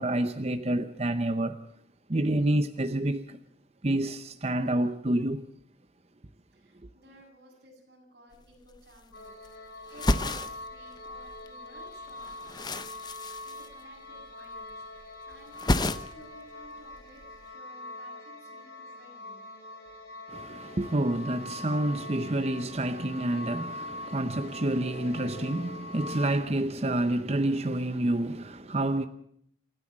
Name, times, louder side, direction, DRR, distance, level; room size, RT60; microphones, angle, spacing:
voice 1, 0.0-1.6 2.1-3.4 3.8-5.5 20.3-29.1, right 1 dB, 35° right, 0.8 m, -28 dB
voice 2, 6.5-19.4, right 1 dB, 60° right, 7.5 m, -55 dB
sound 1, 8.3-8.4 8.6-9.5 9.8-11.5 11.8-14.3 14.5-15.1 15.3-16.4 16.6-17.4, left 2 dB, 25° left, 0.8 m, -31 dB
sound 2, 9.1-26.4, left 2 dB, 65° left, 3.8 m, -43 dB
28.5 x 13.5 x 7.4 m
head